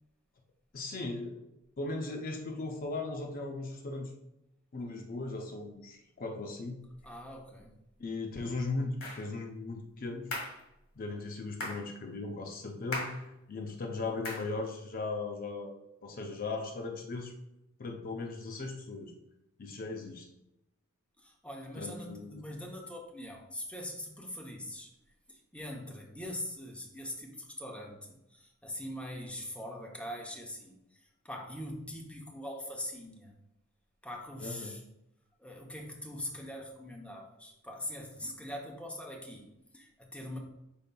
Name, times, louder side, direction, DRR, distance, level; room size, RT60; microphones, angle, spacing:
voice 1, 0.7-1.5 1.8-4.1 4.7-6.8 8.0-10.3 10.9-13.1 13.5-15.7 16.0-17.3 17.8-19.1 19.6-20.3 21.7-22.4 34.4-34.7, left 3 dB, 45° left, 2 dB, 0.5 m, -38 dB
voice 2, 7.0-7.8 21.2-24.9 25.3-33.4 34.0-34.8 35.4-40.4, left 1 dB, 5° left, 0 dB, 0.7 m, -42 dB
sound 1, 9.0-9.3 10.3-10.6 11.6-11.9 12.9-13.2 14.2-14.5, left 2 dB, 90° left, 1.6 m, -37 dB
5.3 x 4.4 x 2.2 m, 0.87 s
head